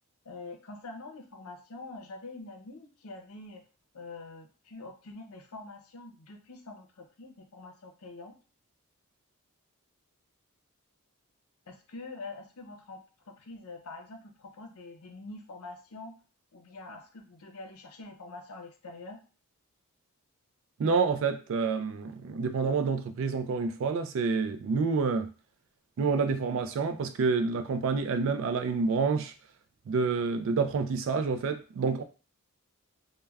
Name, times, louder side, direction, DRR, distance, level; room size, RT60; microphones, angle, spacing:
voice 1, 0.2-3.6 3.9-8.3 11.7-16.2 16.5-19.2, left 3 dB, 70° left, 0.6 m, -45 dB
voice 2, 20.8-25.3 26.0-29.3 29.9-32.0, right 4 dB, 60° right, 0.3 m, -28 dB
3.3 x 2.1 x 2.2 m
head